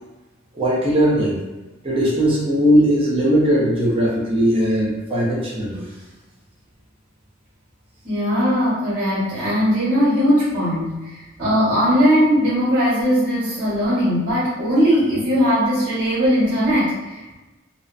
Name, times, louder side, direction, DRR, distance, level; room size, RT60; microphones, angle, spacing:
voice 1, 0.5-1.4 1.8-5.9, equal, 30° right, -5 dB, 0.6 m, -18 dB
voice 2, 8.0-17.4, equal, 60° right, -11 dB, 1.4 m, -19 dB
2.7 x 2.0 x 2.4 m, 1.1 s
head